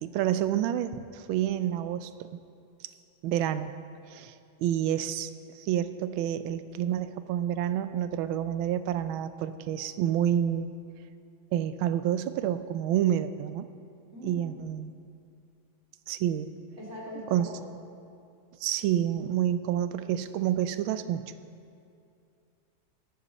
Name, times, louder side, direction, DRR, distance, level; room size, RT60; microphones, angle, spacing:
voice 1, 0.0-2.3 3.2-3.7 4.1-10.7 11.5-13.7 14.2-14.9 16.1-16.5 17.3-17.5 18.6-21.2, right 11 dB, 80° right, 12 dB, 1.4 m, -29 dB
voice 2, 14.1-14.5 16.8-17.8, equal, 35° right, -6 dB, 3.0 m, -42 dB
14.0 x 10.5 x 4.0 m, 2.5 s
omnidirectional pair, 2.2 m